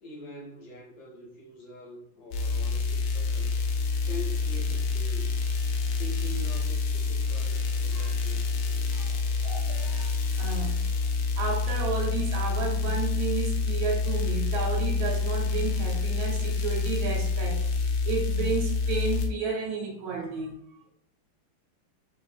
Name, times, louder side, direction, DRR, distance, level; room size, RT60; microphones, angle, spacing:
voice 1, 0.0-3.6 4.1-5.4 5.8-8.9, left 2 dB, 65° left, 1.8 m, -44 dB
sound 1, 2.3-19.3, left 4 dB, 85° left, 1.5 m, -27 dB
voice 2, 9.4-10.9 11.4-20.6, right 5 dB, 75° right, 1.6 m, -32 dB
6.4 x 2.8 x 2.2 m
omnidirectional pair, 2.3 m